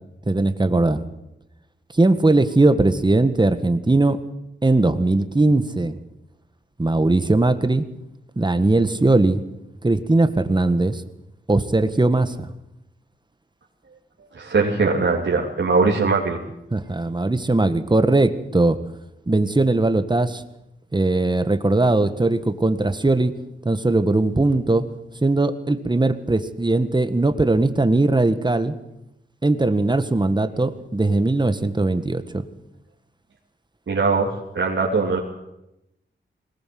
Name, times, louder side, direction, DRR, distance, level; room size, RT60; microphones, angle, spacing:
voice 1, 0.3-1.0 1.9-4.2 4.6-6.0 6.8-7.8 8.4-9.4 9.8-11.0 11.5-12.5 16.7-18.8 19.3-20.4 20.9-23.3 23.7-24.8 25.2-28.8 29.4-32.4, right 2 dB, 20° right, 11 dB, 1.7 m, -19 dB
voice 2, 14.3-16.4 33.9-34.3 34.5-35.2, right 4 dB, 70° right, -2 dB, 2.8 m, -20 dB
21.0 x 19.0 x 7.8 m, 0.88 s
cardioid pair, 70°, 21 cm